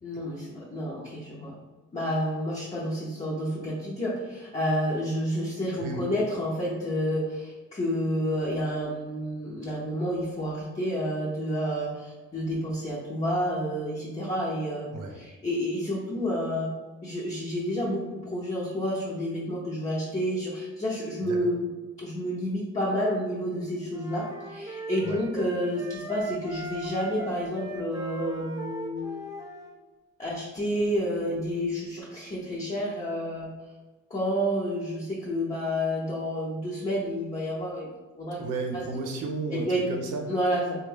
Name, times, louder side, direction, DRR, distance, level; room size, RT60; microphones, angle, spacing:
voice 1, 0.0-1.5 1.9-16.7 17.0-21.7 22.0-29.3 30.2-33.5 34.1-37.9 38.2-38.4 38.7-38.8 39.5-39.9 40.3-40.8, equal, 25° left, -7 dB, 0.8 m, -30 dB
voice 2, 21.2-21.5 25.0-25.2 38.4-40.3, right 3 dB, 90° right, 2 dB, 0.7 m, -33 dB
sound 1, 23.9-29.7, right 2 dB, 10° right, 0.5 m, -38 dB
3.4 x 2.3 x 3.3 m, 1.2 s
cardioid pair, 90°, 30 cm